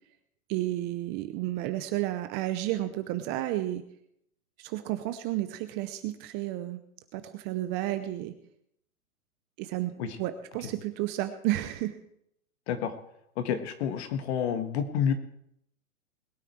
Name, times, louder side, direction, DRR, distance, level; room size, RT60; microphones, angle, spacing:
voice 1, 0.5-3.8 4.6-6.8 7.1-8.3 9.6-12.0, right 15 dB, 25° right, 10 dB, 0.6 m, -32 dB
voice 2, 13.4-15.1, left 8 dB, 50° left, 8 dB, 1.8 m, -29 dB
21.0 x 9.0 x 4.6 m, 0.73 s
hypercardioid pair, 135°, 43 cm